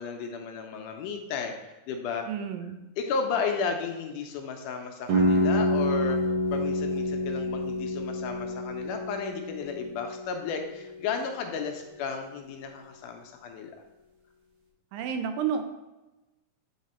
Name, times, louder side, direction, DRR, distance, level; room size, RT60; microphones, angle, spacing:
voice 1, 0.0-2.3 3.0-6.2 6.5-13.7, left 5 dB, 80° left, 4 dB, 2.1 m, -33 dB
voice 2, 2.3-2.8 14.9-15.6, right 7 dB, 85° right, 7 dB, 2.3 m, -30 dB
sound 1, 5.1-10.9, equal, 70° right, 1.2 m, -28 dB
8.2 x 3.4 x 4.2 m, 1.0 s
omnidirectional pair, 3.9 m